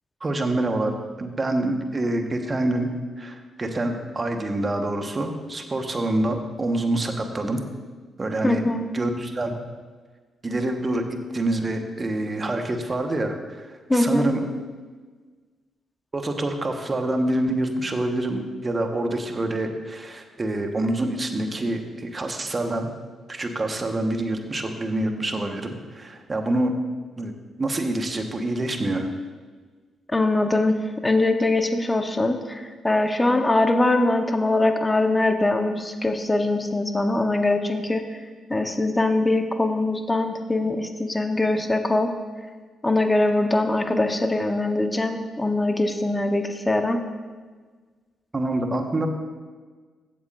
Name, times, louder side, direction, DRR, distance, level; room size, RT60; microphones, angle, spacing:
voice 1, 0.2-2.9 3.2-7.6 8.2-8.6 8.9-9.6 10.4-14.4 16.1-22.9 23.3-26.7 27.2-27.3 27.6-29.1 48.3-49.1, right 1 dB, 35° right, 5 dB, 1.3 m, -26 dB
voice 2, 8.4-8.8 13.9-14.3 30.1-30.8 31.0-38.2 38.5-42.1 42.8-47.0, left 2 dB, 20° left, 6 dB, 1.0 m, -22 dB
15.5 x 8.2 x 2.6 m, 1.4 s
hypercardioid pair, 40°, 0 cm